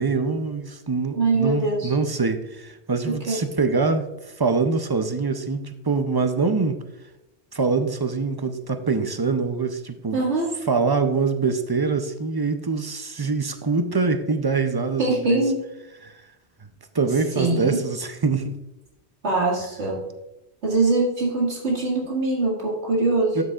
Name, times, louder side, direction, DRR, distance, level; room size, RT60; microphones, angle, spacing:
voice 1, 0.0-4.1 4.4-6.8 7.5-10.2 10.7-15.4 16.0-16.1 16.9-18.6 23.4-23.5, right 4 dB, 35° right, 8 dB, 0.4 m, -24 dB
voice 2, 1.2-1.9 3.3-3.4 10.1-10.5 15.0-15.6 17.4-17.8 19.2-20.0 20.6-23.4, right 3 dB, 80° right, -3 dB, 2.2 m, -22 dB
12.5 x 6.7 x 2.4 m, 0.95 s
omnidirectional pair, 1.1 m